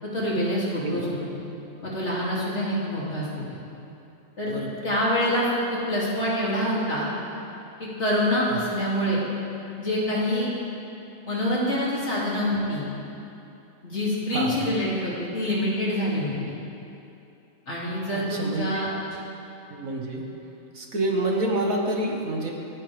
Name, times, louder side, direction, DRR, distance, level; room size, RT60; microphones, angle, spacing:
voice 1, 0.0-1.4 1.8-3.6 4.4-4.5 4.8-7.1 8.0-9.2 9.8-10.5 11.2-12.9 13.8-16.3 17.7-18.9, equal, 55° left, -7 dB, 3.4 m, -26 dB
voice 2, 4.5-4.8 8.5-8.6 14.3-14.6 18.1-18.8 19.7-20.2 20.7-22.5, right 1 dB, 75° right, -1 dB, 2.3 m, -28 dB
28.5 x 9.8 x 3.6 m, 2.8 s
omnidirectional pair, 1.4 m